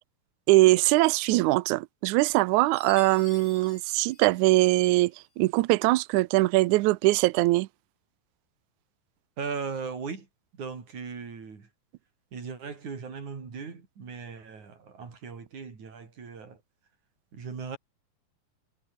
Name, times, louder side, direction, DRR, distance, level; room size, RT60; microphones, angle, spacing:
voice 1, 0.5-7.7, right 20 dB, 90° right, 1.7 m, -22 dB
Chime, 2.7-5.1, left 4 dB, 65° left, 8.7 m, -49 dB
voice 2, 9.4-10.3 10.5-11.7 12.3-16.6 17.3-17.8, right 5 dB, 50° right, 5.7 m, -38 dB
omnidirectional pair, 4.3 m